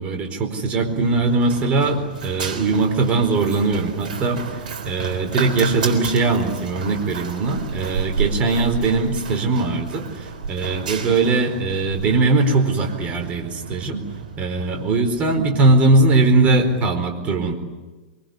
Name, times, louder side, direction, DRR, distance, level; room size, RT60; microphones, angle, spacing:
voice 1, 0.0-4.4 4.8-14.0 14.4-17.5, right 3 dB, 30° right, 5 dB, 4.5 m, -20 dB
Run, 0.8-16.9, right 5 dB, 60° right, 3.9 m, -32 dB
24.0 x 23.5 x 9.7 m, 1.2 s
figure-of-eight pair, 100°, 5 cm